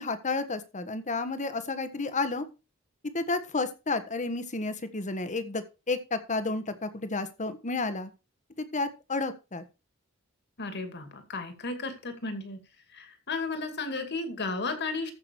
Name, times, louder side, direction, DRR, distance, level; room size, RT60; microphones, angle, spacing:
voice 1, 0.0-2.4 3.1-8.1 8.6-9.6, left 3 dB, 35° left, 11 dB, 1.3 m, -31 dB
voice 2, 10.6-12.6 12.9-15.1, left 3 dB, 55° left, 7 dB, 2.4 m, -34 dB
14.5 x 6.0 x 4.7 m, 0.30 s
head